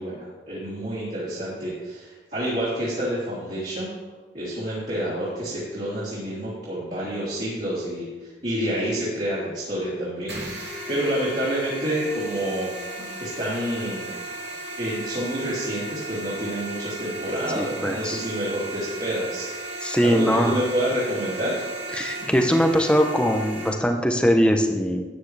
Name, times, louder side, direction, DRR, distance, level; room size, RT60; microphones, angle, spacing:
voice 1, 0.0-3.9 4.3-10.3 10.6-12.7 13.2-14.1 14.8-19.5 20.0-21.6, equal, 45° right, -10 dB, 3.4 m, -28 dB
sound 1, 10.3-23.7, right 2 dB, 75° right, 2.5 m, -35 dB
voice 2, 17.5-18.2 19.8-20.6 21.9-25.0, equal, 5° left, 4 dB, 0.9 m, -21 dB
13.0 x 9.5 x 3.4 m, 1.3 s
head